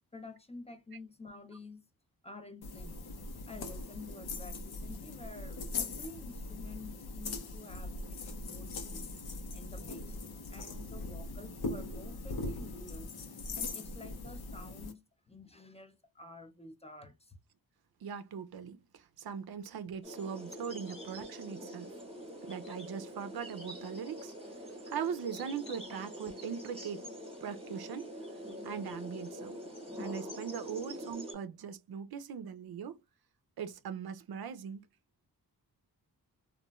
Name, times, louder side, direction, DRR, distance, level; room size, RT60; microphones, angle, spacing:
voice 1, 0.1-1.9 2.2-3.1 3.5-10.2 10.5-13.1 13.5-17.4, left 2 dB, 15° left, 0.4 m, -50 dB
sound 1, 2.6-14.9, left 3 dB, 75° left, 0.7 m, -41 dB
voice 2, 18.0-21.9 22.4-24.3 24.6-27.0 27.4-28.1 28.5-29.6 30.0-33.0 33.6-34.8, right 7 dB, 75° right, 0.5 m, -40 dB
sound 2, 20.0-31.3, equal, 15° right, 0.9 m, -45 dB
2.9 x 2.3 x 2.2 m
wide cardioid pair, 95°, 38 cm